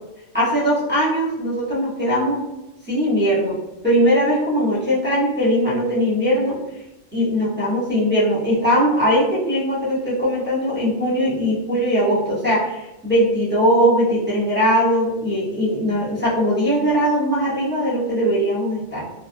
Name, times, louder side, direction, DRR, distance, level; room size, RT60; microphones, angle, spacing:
voice 1, 0.3-2.4 2.9-6.6 7.1-19.0, equal, 10° right, -10 dB, 0.8 m, -20 dB
2.5 x 2.1 x 2.5 m, 0.95 s
omnidirectional pair, 1.2 m